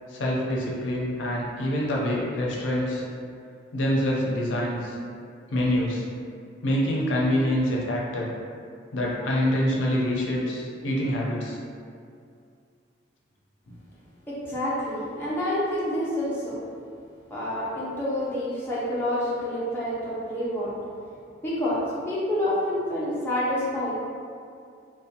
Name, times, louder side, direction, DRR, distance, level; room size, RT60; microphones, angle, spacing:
voice 1, 0.1-3.0 3.7-5.0 5.5-6.1 6.6-8.3 8.9-11.6, equal, 80° left, -3 dB, 0.5 m, -26 dB
voice 2, 14.3-16.6 17.3-20.7 21.4-24.1, left 1 dB, 10° left, -9 dB, 0.4 m, -28 dB
2.5 x 2.1 x 2.7 m, 2.3 s
head